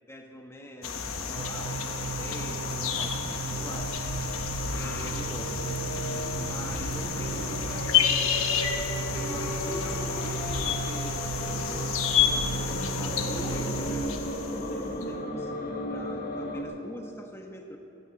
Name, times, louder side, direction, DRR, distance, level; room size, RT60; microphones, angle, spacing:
voice 1, 0.1-4.4 4.7-8.5 9.0-11.9 12.3-17.8, equal, 10° left, 2 dB, 1.2 m, -43 dB
sound 1, 0.8-15.0, left 7 dB, 85° left, 1.1 m, -30 dB
sound 2, 1.4-14.0, right 6 dB, 55° right, 0.4 m, -36 dB
Fear-O-Matic, 3.6-16.6, left 1 dB, 40° left, 1.5 m, -36 dB
13.0 x 9.9 x 8.3 m, 2.8 s
head